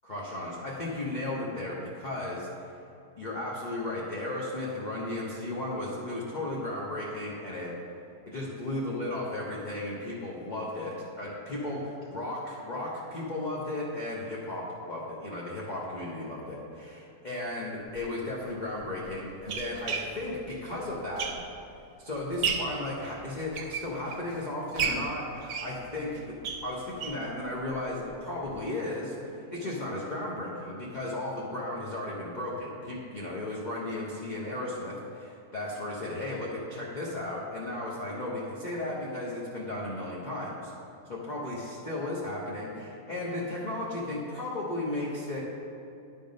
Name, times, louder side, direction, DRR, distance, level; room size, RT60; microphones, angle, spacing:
voice 1, 0.0-2.5 3.2-7.7 8.3-21.3 22.0-26.3 26.6-40.7 41.1-45.4, left 1 dB, 35° left, -5 dB, 0.7 m, -35 dB
sound 1, 17.9-18.0 18.8-21.8 22.2-22.8 23.3-24.3 24.8-27.3 27.7-27.8 28.0-28.1 28.5-28.6, right 6 dB, 70° right, 1.1 m, -34 dB
9.9 x 3.6 x 5.2 m, 2.6 s
omnidirectional pair, 1.8 m